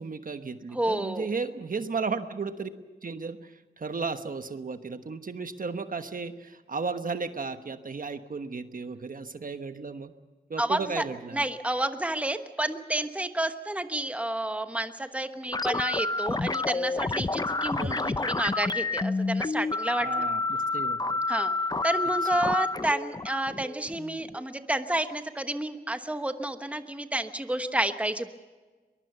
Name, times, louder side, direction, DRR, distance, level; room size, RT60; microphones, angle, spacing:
voice 1, 0.0-2.7 3.0-10.1 10.5-11.5 17.8-18.3 20.0-21.2, right 4 dB, 55° right, 9 dB, 1.2 m, -34 dB
voice 2, 0.7-1.3 10.6-11.0 11.3-20.3 21.3-21.5 21.8-28.3, right 1 dB, 10° right, 8 dB, 1.2 m, -30 dB
sound 1, 15.5-24.4, left 3 dB, 25° left, 0.6 m, -29 dB
22.5 x 22.0 x 6.8 m, 1.3 s
wide cardioid pair, 100°, 17 cm